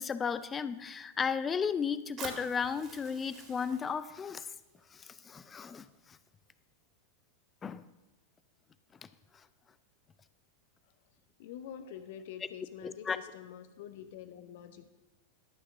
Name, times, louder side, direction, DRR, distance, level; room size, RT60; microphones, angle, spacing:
voice 1, 0.0-4.5 4.9-6.2 7.6-7.9 12.8-13.2, left 6 dB, 20° left, 14 dB, 0.5 m, -34 dB
Fire, 2.2-6.2, right 4 dB, 30° right, 2.3 m, -49 dB
voice 2, 11.4-14.9, left 9 dB, 55° left, 10 dB, 0.9 m, -46 dB
12.0 x 5.9 x 6.1 m, 1.0 s
figure-of-eight pair, 90°, 0 cm